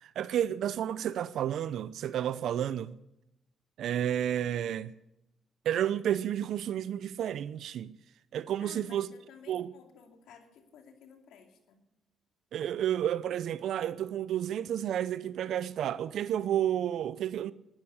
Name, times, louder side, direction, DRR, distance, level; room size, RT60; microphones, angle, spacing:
voice 1, 0.0-2.9 3.8-4.9 5.6-7.9 8.3-9.1 9.5-9.7 12.5-17.5, right 10 dB, 75° right, 0.5 m, -31 dB
voice 2, 8.6-11.8, left 7 dB, 85° left, 2.5 m, -55 dB
12.0 x 10.5 x 9.8 m
cardioid pair, 90°, 0 cm